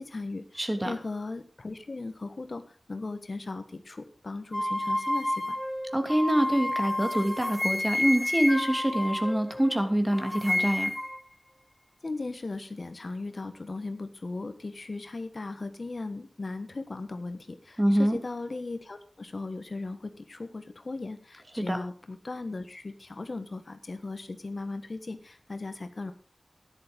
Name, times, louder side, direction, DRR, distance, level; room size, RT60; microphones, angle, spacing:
voice 1, 0.0-5.6 12.0-26.1, left 3 dB, 60° left, 9 dB, 1.3 m, -37 dB
voice 2, 0.6-0.9 5.9-10.9 17.8-18.2 21.6-21.8, right 1 dB, 15° right, 6 dB, 2.8 m, -25 dB
sound 1, 4.5-9.8 10.1-11.2, left 1 dB, 15° left, 2.0 m, -30 dB
12.5 x 10.5 x 5.3 m, 0.38 s
wide cardioid pair, 55°, 0 cm